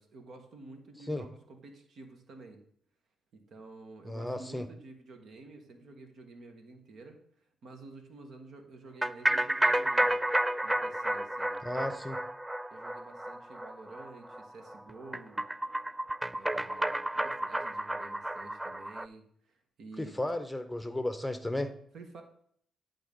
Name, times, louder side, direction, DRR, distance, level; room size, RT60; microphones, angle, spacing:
voice 1, 0.0-2.6 3.3-7.2 7.6-10.3 10.6-12.1 12.7-15.4 16.3-20.2 21.9-22.2, right 3 dB, 65° right, 5 dB, 1.5 m, -50 dB
voice 2, 4.1-4.7 11.6-12.2 20.0-21.7, left 1 dB, 10° left, 10 dB, 0.8 m, -34 dB
sound 1, 9.0-19.1, right 1 dB, 10° right, 0.3 m, -31 dB
10.5 x 3.9 x 5.3 m, 0.65 s
supercardioid pair, 60°, 0 cm